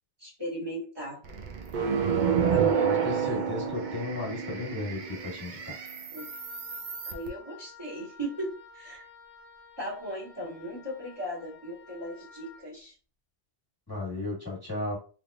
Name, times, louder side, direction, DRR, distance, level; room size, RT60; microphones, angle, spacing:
voice 1, 0.2-1.2 2.5-2.9 6.1-6.2 7.1-9.0 9.8-12.9, equal, 20° right, -5 dB, 1.4 m, -37 dB
sound 1, 1.2-7.3, right 7 dB, 55° right, 0.6 m, -29 dB
voice 2, 2.5-5.6 13.9-15.0, left 2 dB, 20° left, -4 dB, 1.4 m, -34 dB
Wind instrument woodwind instrument, 6.2-12.7, left 5 dB, 60° left, 1.0 m, -51 dB
3.4 x 3.3 x 2.4 m, 0.35 s
omnidirectional pair, 1.2 m